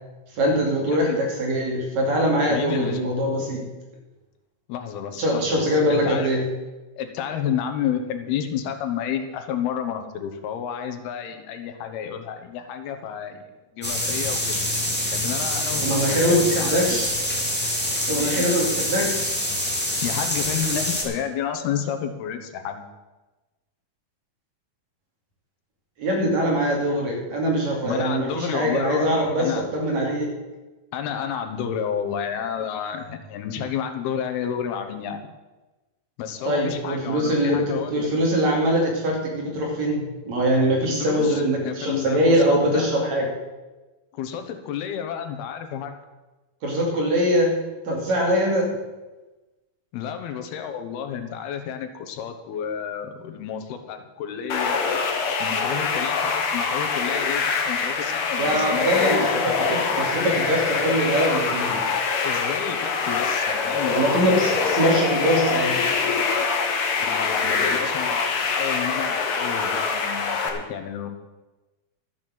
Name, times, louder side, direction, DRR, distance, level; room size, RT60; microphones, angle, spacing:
voice 1, 0.3-3.7 5.2-6.4 15.8-17.1 18.1-19.4 26.0-30.4 36.4-43.3 46.6-47.6 47.9-48.7 58.4-61.9 63.9-65.8, equal, 50° right, 0 dB, 3.6 m, -22 dB
voice 2, 0.9-1.2 2.5-3.0 4.7-5.6 5.9-6.4 7.0-13.4 13.7-14.6 15.1-17.0 18.2-18.5 20.0-22.8 27.8-29.7 30.9-35.2 36.2-38.1 40.8-42.9 44.1-46.0 49.9-55.0 55.4-59.8 62.2-64.0 64.2-64.3 67.0-71.1, left 8 dB, 90° left, 7 dB, 3.2 m, -31 dB
sound 1, 13.8-21.0, left 1 dB, 5° left, 2.1 m, -26 dB
sound 2, 54.5-70.5, left 5 dB, 55° left, 1.6 m, -24 dB
12.5 x 8.4 x 7.6 m, 1.1 s
omnidirectional pair, 4.3 m